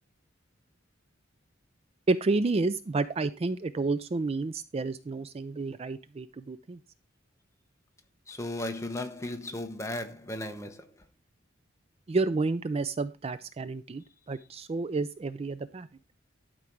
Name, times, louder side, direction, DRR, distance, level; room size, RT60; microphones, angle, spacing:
voice 1, 2.1-6.8 12.1-15.9, right 3 dB, 30° right, 0.4 m, -30 dB
voice 2, 8.3-11.1 14.4-14.5, left 1 dB, 15° left, 1.0 m, -36 dB
12.0 x 5.2 x 4.6 m
head